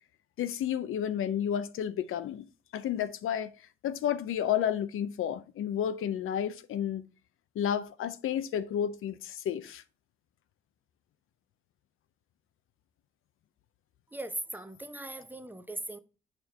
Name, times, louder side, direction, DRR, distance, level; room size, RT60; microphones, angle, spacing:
voice 1, 0.4-2.5 2.7-3.5 3.8-7.0 7.6-9.8, left 9 dB, 85° left, 0.5 m, -31 dB
voice 2, 14.1-16.0, right 1 dB, 10° right, 0.7 m, -39 dB
6.7 x 4.4 x 3.4 m
cardioid pair, 75°, 21 cm